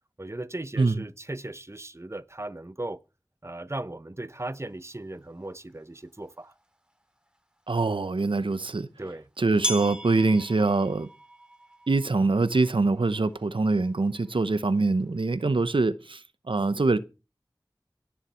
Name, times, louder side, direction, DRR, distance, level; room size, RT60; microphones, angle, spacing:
voice 1, 0.2-3.0 3.4-6.5 9.0-9.3, right 2 dB, 30° right, 1.0 m, -37 dB
sound 1, 5.7-5.8 6.6-6.7 8.4-8.5 9.6-15.2, equal, 10° right, 2.4 m, -38 dB
voice 2, 7.7-8.9 9.4-11.1 11.9-16.2 16.5-17.0, right 3 dB, 85° right, 0.8 m, -24 dB
17.5 x 7.3 x 6.2 m
wide cardioid pair, 45°, 8 cm